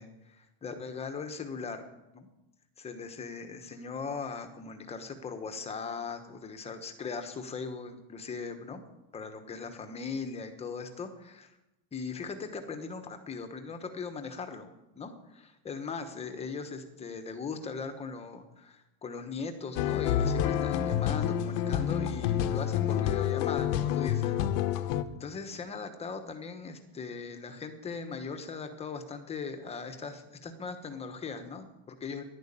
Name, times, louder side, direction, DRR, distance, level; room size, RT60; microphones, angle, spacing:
voice 1, 0.0-1.8 2.1-2.3 2.8-8.8 9.1-11.5 11.9-14.7 14.9-24.5 25.1-32.2, left 5 dB, 15° left, 7 dB, 1.0 m, -39 dB
sound 1, 19.8-25.0, left 10 dB, 55° left, 0.9 m, -28 dB
11.0 x 11.0 x 8.6 m, 0.95 s
cardioid pair, 180°, 43 cm